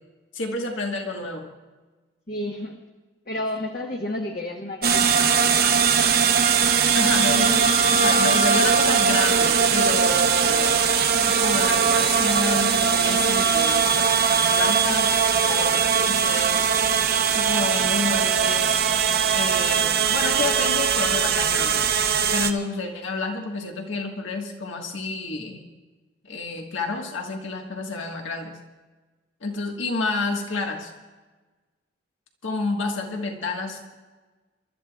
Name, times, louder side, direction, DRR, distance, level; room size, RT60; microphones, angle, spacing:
voice 1, 0.3-1.5 6.9-10.8 11.2-16.7 17.3-18.8 19.3-21.9 22.3-25.6 26.3-28.6 29.4-30.9 32.4-34.0, left 3 dB, 80° left, 2 dB, 1.6 m, -29 dB
voice 2, 2.3-2.8 3.3-5.8, left 1 dB, 50° left, 1 dB, 1.2 m, -32 dB
sound 1, 4.8-22.5, right 6 dB, 50° right, 0.8 m, -20 dB
28.5 x 13.0 x 2.4 m, 1.3 s
head